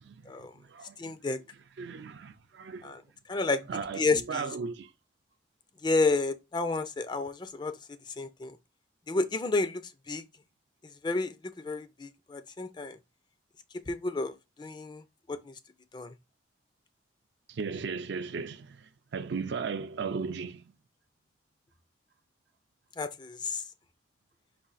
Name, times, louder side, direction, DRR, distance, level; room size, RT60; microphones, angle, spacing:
voice 1, 0.0-0.3 0.6-1.2 1.8-2.9 3.7-4.9 17.5-20.7, right 5 dB, 65° right, 0.4 m, -36 dB
voice 2, 1.0-1.4 2.8-3.0 3.3-3.6 3.9-4.5 5.8-8.6 9.1-10.3 10.8-13.0 13.7-15.0 15.3-15.5 15.9-16.1 23.0-23.6, left 3 dB, 25° left, 0.4 m, -31 dB
4.8 x 2.4 x 4.0 m
head